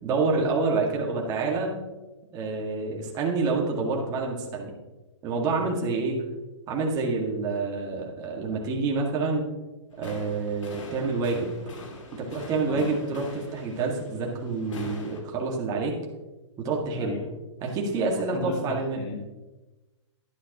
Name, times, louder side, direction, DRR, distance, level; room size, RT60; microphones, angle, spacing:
voice 1, 0.0-1.7 2.3-4.8 5.2-6.2 6.7-9.5 10.0-11.5 12.1-16.0 16.6-17.2 17.6-19.0, right 3 dB, 25° right, -1 dB, 1.9 m, -27 dB
sound 1, 9.9-15.2, left 3 dB, 80° left, 2.7 m, -43 dB
voice 2, 16.9-17.3 18.3-19.2, left 4 dB, 35° left, 3 dB, 1.4 m, -36 dB
11.5 x 11.0 x 3.0 m, 1.1 s
hypercardioid pair, 145°, 16 cm